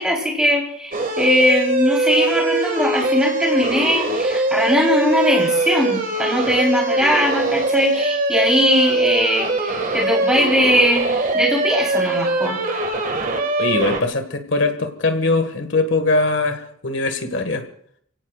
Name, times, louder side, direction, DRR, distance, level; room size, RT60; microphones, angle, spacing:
voice 1, 0.0-11.0 11.3-12.6, equal, 5° right, -1 dB, 3.8 m, -20 dB
sound 1, 0.9-14.0, right 2 dB, 40° right, 1.8 m, -21 dB
voice 2, 13.6-17.6, left 3 dB, 60° left, 7 dB, 1.8 m, -21 dB
29.5 x 17.0 x 2.4 m, 0.65 s
head